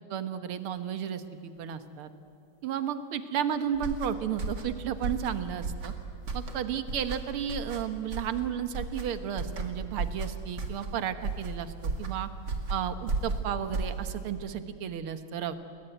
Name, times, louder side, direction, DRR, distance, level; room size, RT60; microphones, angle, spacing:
voice 1, 0.1-2.1 2.6-5.9 6.3-12.3 12.7-15.5, right 8 dB, 65° right, 10 dB, 1.3 m, -33 dB
sound 1, 3.7-14.4, right 3 dB, 35° right, 2.3 m, -35 dB
30.0 x 21.5 x 9.1 m, 2.3 s
omnidirectional pair, 4.0 m